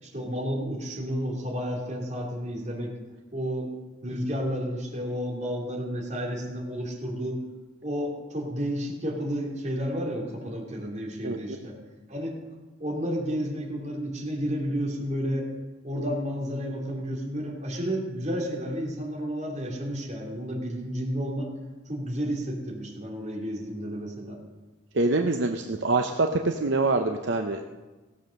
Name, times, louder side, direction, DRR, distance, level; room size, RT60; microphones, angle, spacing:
voice 1, 0.0-2.9 3.3-3.7 4.0-7.4 7.8-11.8 12.1-12.4 12.8-15.5 15.8-21.5 21.8-24.4, equal, 35° right, -2 dB, 3.0 m, -31 dB
voice 2, 24.9-27.7, right 3 dB, 60° right, 4 dB, 0.7 m, -25 dB
17.0 x 7.3 x 6.5 m, 1.2 s
head